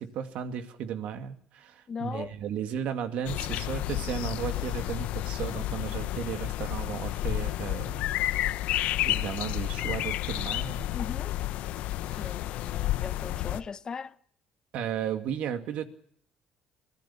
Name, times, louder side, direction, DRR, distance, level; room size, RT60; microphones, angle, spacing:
voice 1, 0.0-8.1 9.0-10.9 12.1-12.3 14.7-15.9, right 8 dB, 70° right, 2.4 m, -35 dB
voice 2, 1.9-2.3 10.9-11.3 12.2-14.2, left 5 dB, 35° left, 1.0 m, -38 dB
sound 1, 3.3-13.6, left 14 dB, 80° left, 0.9 m, -31 dB
25.0 x 17.0 x 7.2 m
cardioid pair, 105°, 2 cm